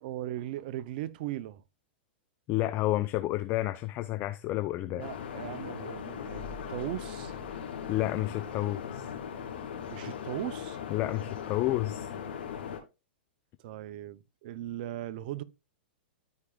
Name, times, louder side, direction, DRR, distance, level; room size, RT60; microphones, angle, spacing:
voice 1, 0.0-1.6 4.9-7.4 9.9-10.8 13.6-15.4, right 13 dB, 55° right, 0.6 m, -38 dB
voice 2, 2.5-5.1 7.9-9.1 10.9-12.1, left 16 dB, 35° left, 0.6 m, -30 dB
sound 1, 5.0-12.8, left 7 dB, 75° left, 2.6 m, -39 dB
13.5 x 4.9 x 2.3 m
hypercardioid pair, 125°, 6 cm